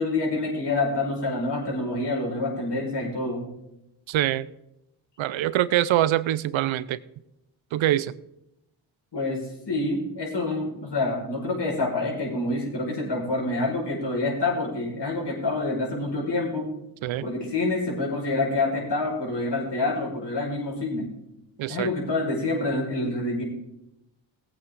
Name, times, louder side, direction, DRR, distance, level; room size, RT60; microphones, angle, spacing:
voice 1, 0.0-3.5 9.1-16.7 17.2-21.1 21.7-23.4, left 2 dB, 60° left, -2 dB, 5.1 m, -27 dB
voice 2, 4.1-4.5 5.2-7.0 7.7-8.1 17.0-17.3 21.6-21.9, right 13 dB, 75° right, 18 dB, 0.7 m, -24 dB
17.5 x 8.3 x 3.8 m, 0.86 s
supercardioid pair, 45°, 47 cm